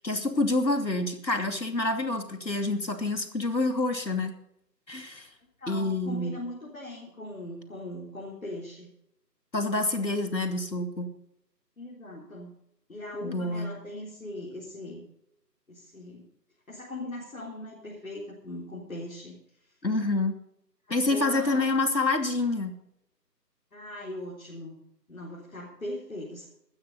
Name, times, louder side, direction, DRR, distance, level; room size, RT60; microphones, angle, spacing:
voice 1, 0.0-4.3 4.9-5.3 5.7-6.3 9.5-11.1 13.2-13.7 19.8-20.3 20.9-22.7, left 2 dB, 85° left, 6 dB, 2.8 m, -27 dB
voice 2, 5.6-8.9 11.8-12.5 12.9-15.1 15.7-16.3 16.7-19.4 19.6-19.7 20.9-21.7 23.7-24.8 25.1-26.5, left 1 dB, 55° left, -4 dB, 4.0 m, -40 dB
16.0 x 12.5 x 4.1 m, 0.80 s
figure-of-eight pair, 165°, 50 cm